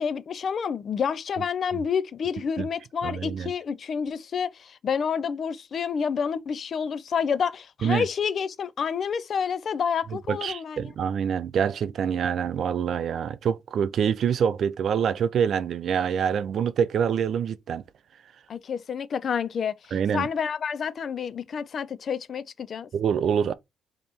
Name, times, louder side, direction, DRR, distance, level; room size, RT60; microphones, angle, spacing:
voice 1, 0.0-10.8 18.5-22.9, left 6 dB, 55° left, 0.4 m, -29 dB
voice 2, 3.0-3.5 7.8-8.1 10.3-17.8 19.9-20.3 22.9-23.5, right 7 dB, 65° right, 0.4 m, -25 dB
3.3 x 2.9 x 4.2 m
cardioid pair, 90°, 0 cm